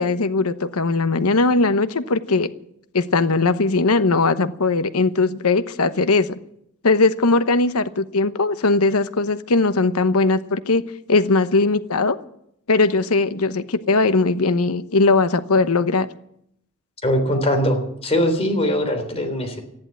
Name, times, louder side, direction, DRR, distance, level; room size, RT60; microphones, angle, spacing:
voice 1, 0.0-2.5 2.9-6.4 6.8-10.8 11.1-12.2 12.7-16.1, left 3 dB, 80° left, 12 dB, 1.0 m, -19 dB
voice 2, 17.0-19.6, equal, 30° left, 4 dB, 3.5 m, -21 dB
14.5 x 10.5 x 9.1 m, 0.73 s
head